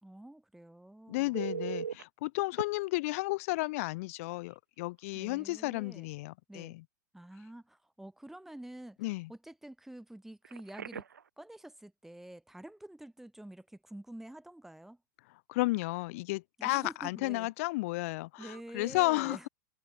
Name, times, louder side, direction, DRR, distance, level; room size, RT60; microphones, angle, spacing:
voice 1, 0.0-1.4 5.1-6.1 6.5-6.8 7.1-11.1 11.4-15.0 16.6-17.5 18.4-19.5, right 1 dB, 5° right, 3.2 m, -48 dB
voice 2, 1.1-6.8 9.0-9.3 15.5-19.5, left 22 dB, 50° left, 0.9 m, -33 dB
Telephone, 1.3-2.0 2.6-2.7 4.4-4.6 5.0-5.2 10.4-11.3 18.4-18.6, right 7 dB, 75° right, 0.5 m, -39 dB
figure-of-eight pair, 90°, 9 cm